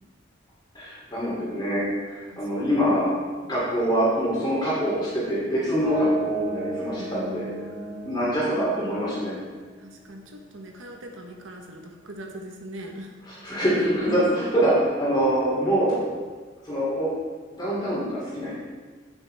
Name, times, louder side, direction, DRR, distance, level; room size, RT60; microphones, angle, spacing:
voice 1, 0.7-3.1 3.5-7.5 8.0-9.3 13.3-16.0 16.6-17.1 17.5-18.5, equal, 20° left, -9 dB, 2.6 m, -24 dB
voice 2, 2.3-2.7 7.0-8.5 9.8-13.1, right 1 dB, 85° right, 2 dB, 1.0 m, -41 dB
sound 1, 5.8-9.7, right 2 dB, 15° right, 2.2 m, -34 dB
8.6 x 8.4 x 3.4 m, 1.5 s
head